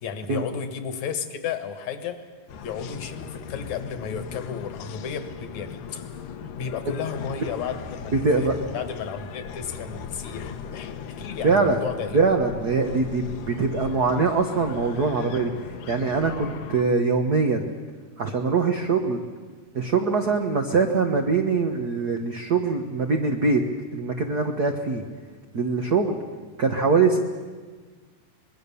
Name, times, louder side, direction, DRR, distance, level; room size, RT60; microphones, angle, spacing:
voice 1, 0.0-2.2 2.6-6.1 6.5-12.2, left 7 dB, 65° left, 9 dB, 2.5 m, -33 dB
sound 1, 2.5-16.8, left 6 dB, 85° left, 2.7 m, -38 dB
voice 2, 8.2-8.5 11.4-11.9 12.1-17.7 18.2-19.2 19.7-23.6 23.9-25.0 25.5-26.2 26.6-27.2, right 4 dB, 80° right, 4 dB, 0.8 m, -23 dB
25.5 x 21.0 x 7.0 m, 1.4 s
omnidirectional pair, 3.7 m